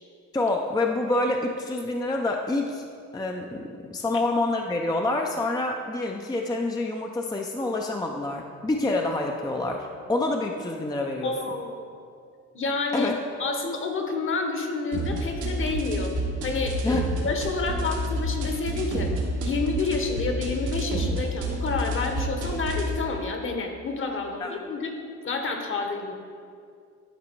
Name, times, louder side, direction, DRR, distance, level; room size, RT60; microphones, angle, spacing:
voice 1, 0.3-2.8 3.1-11.3 12.9-13.2 16.8-17.0 24.4-24.5, left 2 dB, 15° left, 2 dB, 0.5 m, -27 dB
voice 2, 11.2-11.8 12.5-13.1 13.4-16.1 16.4-19.1 19.4-24.9 25.2-26.1, left 3 dB, 40° left, 4 dB, 1.1 m, -29 dB
sound 1, 14.9-22.9, right 1 dB, 80° right, 1.5 m, -29 dB
11.0 x 4.2 x 4.5 m, 2.3 s
cardioid pair, 90°, 30 cm